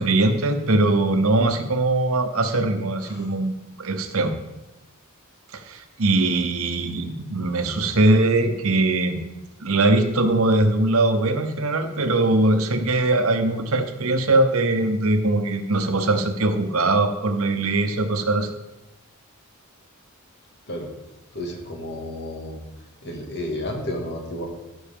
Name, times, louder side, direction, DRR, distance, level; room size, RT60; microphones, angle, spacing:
voice 1, 0.0-4.3 5.5-9.2 9.6-18.5, right 2 dB, 70° right, 7 dB, 1.0 m, -21 dB
voice 2, 3.0-3.3 20.7-20.9 21.3-22.6 23.0-24.5, left 1 dB, 55° left, 0 dB, 2.0 m, -32 dB
15.0 x 6.3 x 3.7 m, 0.99 s
head